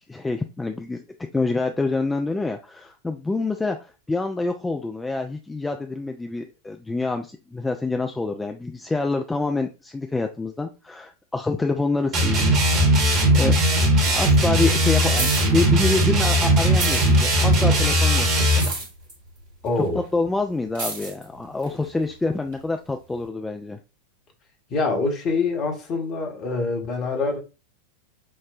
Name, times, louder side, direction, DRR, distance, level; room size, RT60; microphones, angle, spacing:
voice 1, 0.1-1.0 1.3-12.5 13.3-18.7 19.8-19.9 20.1-23.8, left 3 dB, 10° left, 0.3 m, -27 dB
sound 1, 12.1-18.7, right 1 dB, 35° right, 1.2 m, -19 dB
sound 2, 12.5-13.5 13.8-16.3 16.6-22.6 23.2-23.3, right 3 dB, 55° right, 1.6 m, -34 dB
voice 2, 19.6-20.0 24.7-27.4, left 3 dB, 35° left, 1.0 m, -25 dB
5.8 x 2.1 x 2.3 m
figure-of-eight pair, 90°, 0 cm